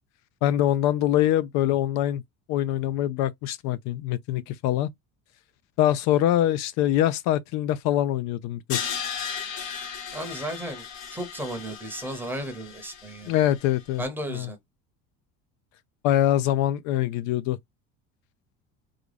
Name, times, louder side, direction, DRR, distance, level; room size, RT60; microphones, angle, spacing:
voice 1, 0.4-2.2 2.5-4.9 5.8-8.8 13.3-14.0 14.3-14.5 16.0-17.6, left 12 dB, 60° left, 0.4 m, -24 dB
Crash cymbal, 8.7-13.7, left 7 dB, 80° left, 1.7 m, -36 dB
voice 2, 10.1-10.8 11.1-13.3 14.0-14.6, right 1 dB, 5° right, 0.8 m, -34 dB
3.8 x 2.2 x 3.3 m
cardioid pair, 170°, 32 cm